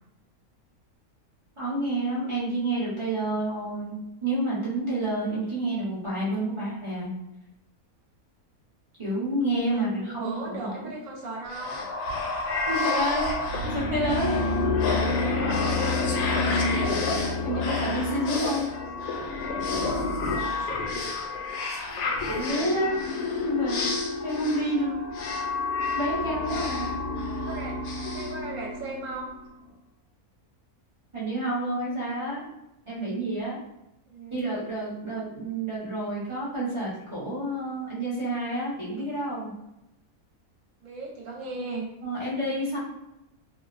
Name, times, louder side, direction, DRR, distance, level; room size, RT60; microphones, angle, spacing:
voice 1, 1.6-7.1 9.0-10.9 12.7-13.3 13.6-14.4 17.4-18.7 21.9-22.0 22.3-23.0 23.4-23.9 24.2-25.0 25.9-27.2 31.1-32.5 32.9-33.6 34.3-39.5 42.0-42.8, right 1 dB, 35° right, -8 dB, 0.5 m, -29 dB
voice 2, 9.7-11.8 15.0-16.0 20.2-21.0 27.3-27.7 28.1-29.3 34.1-34.4 40.8-41.9, right 3 dB, 70° right, -2 dB, 0.9 m, -37 dB
sound 1, 11.5-29.1, left 3 dB, 80° left, 1.0 m, -28 dB
2.5 x 2.0 x 2.4 m, 0.89 s
omnidirectional pair, 1.5 m